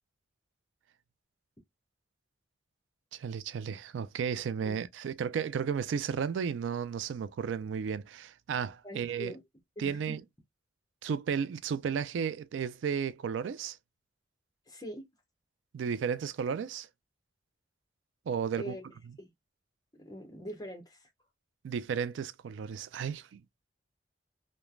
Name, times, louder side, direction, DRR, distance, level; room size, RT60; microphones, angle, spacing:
voice 1, 3.1-9.3 9.8-10.2 11.0-13.8 15.7-16.9 18.3-18.7 21.6-23.4, right 7 dB, 85° right, 0.3 m, -33 dB
voice 2, 8.8-9.4 9.8-10.2 14.7-15.0 18.6-18.8 19.2-19.3 19.9-21.1, equal, 20° left, 0.7 m, -43 dB
3.1 x 2.0 x 2.2 m
head